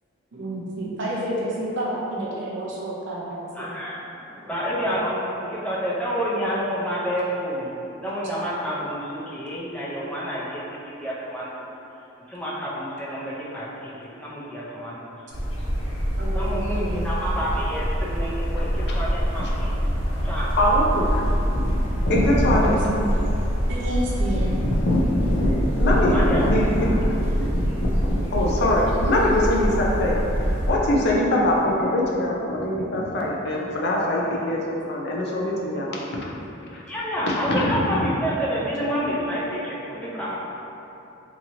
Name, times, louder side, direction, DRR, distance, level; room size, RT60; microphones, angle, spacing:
voice 1, 0.3-3.5 10.0-10.1 16.2-17.1 18.7-18.8 22.0-23.0 23.7-24.5 31.1-31.2 35.7-35.8, right 1 dB, 65° right, -5 dB, 0.6 m, -30 dB
voice 2, 3.5-7.7 8.0-11.5 12.3-15.0 16.3-19.7 20.2-20.5 26.1-26.7 36.9-40.3, equal, 5° left, -8 dB, 0.5 m, -29 dB
sound 1, 15.3-30.7, equal, 85° left, 0.9 m, -24 dB
voice 3, 20.6-22.8 24.3-27.7 28.0-36.0 37.5-37.7, left 1 dB, 55° left, -3 dB, 0.5 m, -23 dB
2.9 x 2.7 x 2.6 m, 2.9 s
head